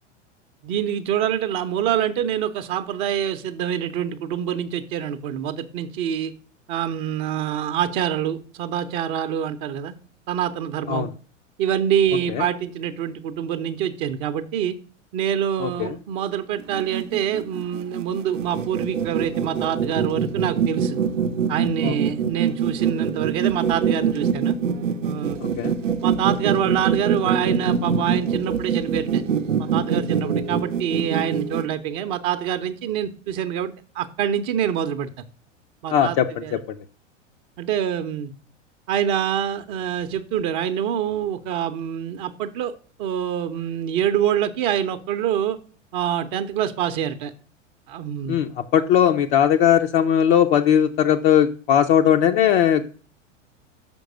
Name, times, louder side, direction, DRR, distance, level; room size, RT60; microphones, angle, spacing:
voice 1, 0.6-6.3 6.7-9.9 10.3-11.1 11.6-14.8 15.1-21.0 21.5-24.6 25.0-25.4 26.0-29.2 29.6-35.1 35.8-36.6 37.6-38.3 38.9-42.7 43.0-45.6 45.9-47.3 47.9-48.4, right 9 dB, 40° right, 8 dB, 0.7 m, -25 dB
voice 2, 15.6-16.0 21.8-21.9 25.4-25.7 35.9-36.8 48.3-52.8, left 9 dB, 35° left, 4 dB, 0.5 m, -19 dB
sound 1, 16.6-31.7, right 7 dB, 80° right, 0.7 m, -24 dB
6.4 x 5.3 x 6.1 m, 0.40 s
figure-of-eight pair, 90°, 38 cm